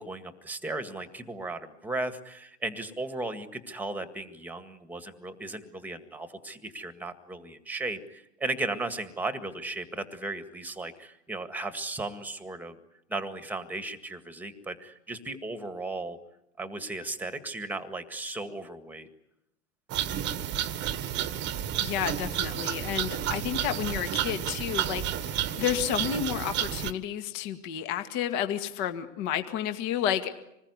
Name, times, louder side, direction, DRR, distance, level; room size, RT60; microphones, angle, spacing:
voice 1, 0.0-12.8 13.1-16.2 16.6-19.1, right 2 dB, 5° right, 10 dB, 1.8 m, -36 dB
sound 1, 19.9-26.9, right 11 dB, 25° right, 1.4 m, -31 dB
voice 2, 21.8-30.3, left 10 dB, 40° left, 8 dB, 2.1 m, -31 dB
26.5 x 20.5 x 9.7 m, 0.84 s
hypercardioid pair, 125°, 44 cm